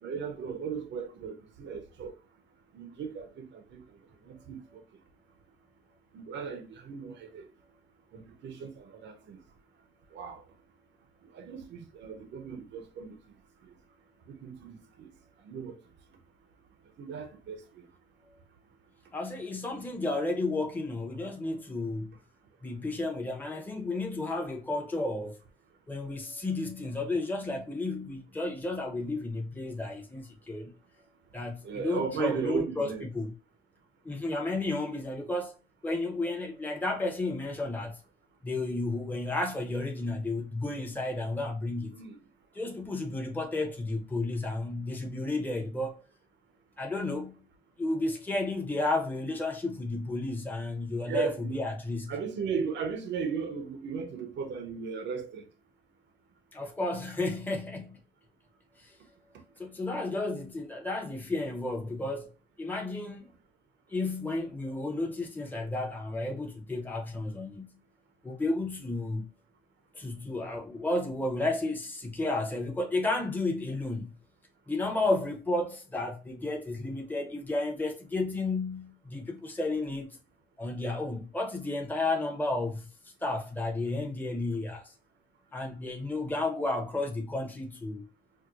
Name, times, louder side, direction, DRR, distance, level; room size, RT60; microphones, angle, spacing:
voice 1, 0.0-2.1 2.7-3.8 4.2-4.8 6.1-7.5 8.1-9.4 10.1-10.4 11.3-13.2 14.3-15.1 15.4-15.8 17.0-17.8 31.6-33.1 41.9-42.2 51.1-51.6 52.1-55.5, right 6 dB, 65° right, 0.6 m, -36 dB
voice 2, 19.1-22.1 22.6-25.4 25.9-30.7 31.3-33.3 34.0-35.5 35.8-38.0 38.4-41.9 42.5-46.0 46.8-47.3 47.8-52.1 56.5-58.0 58.8-59.0 59.6-62.3 62.6-63.3 63.9-67.7 68.2-69.3 69.9-74.1 74.7-80.2 80.6-82.9 83.2-84.9 85.5-88.0, left 2 dB, 10° left, 0.7 m, -32 dB
4.5 x 2.1 x 2.3 m
cardioid pair, 90°, 20 cm